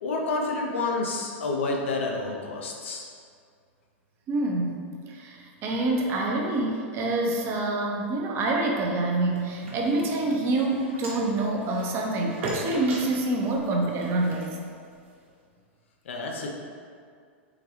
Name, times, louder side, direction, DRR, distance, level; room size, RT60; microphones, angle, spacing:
voice 1, 0.0-3.1 16.1-16.5, left 3 dB, 75° left, 0 dB, 0.5 m, -29 dB
voice 2, 4.3-4.8 5.1-14.5, right 2 dB, 35° right, 0 dB, 0.5 m, -26 dB
sound 1, 9.2-15.3, right 1 dB, 75° right, 0.9 m, -39 dB
3.8 x 2.2 x 2.9 m, 2.2 s
hypercardioid pair, 105°, 7 cm